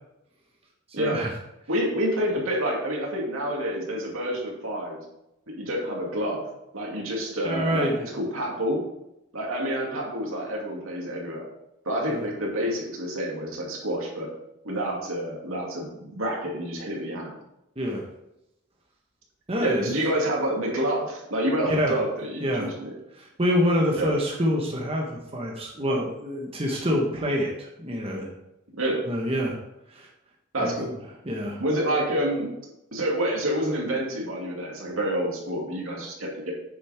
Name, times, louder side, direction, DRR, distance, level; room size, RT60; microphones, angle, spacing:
voice 1, 1.0-1.3 7.4-8.0 12.1-12.2 17.8-18.0 19.5-19.9 21.6-21.9 22.4-22.7 23.2-28.3 29.1-29.6 29.9-30.1 30.6-30.7 31.2-31.6, equal, 30° right, -1 dB, 1.2 m, -26 dB
voice 2, 1.7-5.0 5.5-6.5 6.7-8.8 9.3-11.5 11.9-14.3 14.6-17.4 19.6-22.9 24.0-24.1 28.8-29.0 30.5-30.9 31.6-32.5 32.9-36.5, right 1 dB, 85° right, -2 dB, 2.5 m, -28 dB
9.0 x 6.9 x 3.6 m, 0.86 s
head